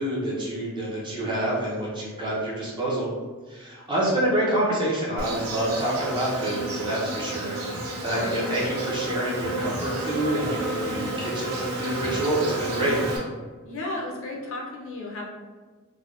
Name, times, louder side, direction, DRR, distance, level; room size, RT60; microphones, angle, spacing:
voice 1, 0.0-3.1 3.5-13.0, right 1 dB, 20° right, -5 dB, 0.6 m, -27 dB
Insect, 5.2-13.2, right 1 dB, 90° right, 0.6 m, -31 dB
voice 2, 8.1-8.5 13.6-15.2, left 2 dB, 60° left, -2 dB, 0.5 m, -33 dB
3.4 x 2.1 x 2.4 m, 1.4 s
head